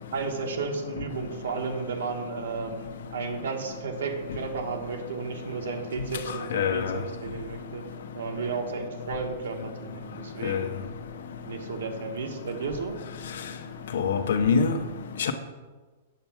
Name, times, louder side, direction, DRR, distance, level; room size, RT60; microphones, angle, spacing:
voice 1, 0.1-7.9 8.1-10.8 11.5-13.0, right 4 dB, 85° right, 1.4 m, -33 dB
voice 2, 6.5-6.9 10.4-10.6 13.9-14.8 15.2-15.3, left 6 dB, 70° left, 0.9 m, -24 dB
8.6 x 4.6 x 7.2 m
supercardioid pair, 175°, 0 cm